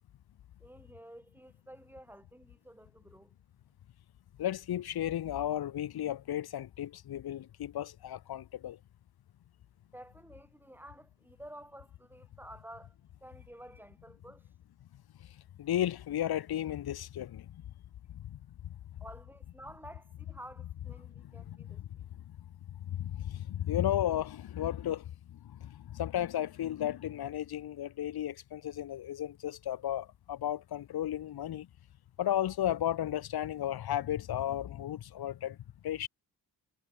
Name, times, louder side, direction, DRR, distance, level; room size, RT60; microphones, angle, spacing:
voice 1, 0.6-3.3 9.9-13.0 13.2-14.5 19.0-22.1, right 1 dB, 5° right, 6.6 m, -51 dB
voice 2, 4.4-8.8 15.6-17.6 18.1-18.8 21.2-21.8 22.7-31.7 32.2-35.6 35.8-36.1, left 11 dB, 80° left, 3.7 m, -34 dB
wide cardioid pair, 145°, 37 cm